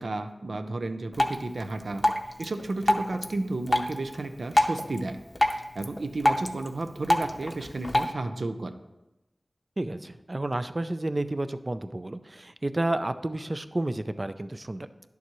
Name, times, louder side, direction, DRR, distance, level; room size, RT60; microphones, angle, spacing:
voice 1, 0.0-2.0 2.4-8.7, right 2 dB, 80° right, 8 dB, 0.6 m, -33 dB
Drip, 1.1-8.1, left 1 dB, 30° left, 0.6 m, -28 dB
voice 2, 9.8-14.9, right 2 dB, 35° right, 11 dB, 0.4 m, -31 dB
11.0 x 7.0 x 3.1 m, 0.99 s
wide cardioid pair, 60°, 0 cm